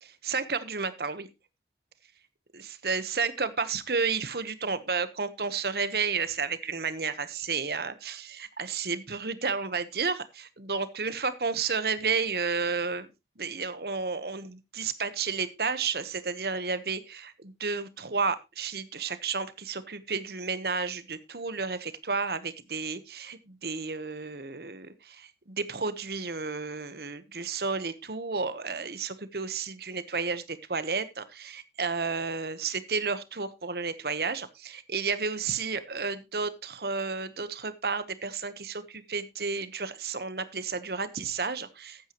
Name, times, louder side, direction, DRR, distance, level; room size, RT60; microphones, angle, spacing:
voice 1, 0.0-1.3 2.5-13.1 13.4-42.1, right 5 dB, 65° right, 13 dB, 1.1 m, -32 dB
14.0 x 9.0 x 3.0 m, 0.24 s
head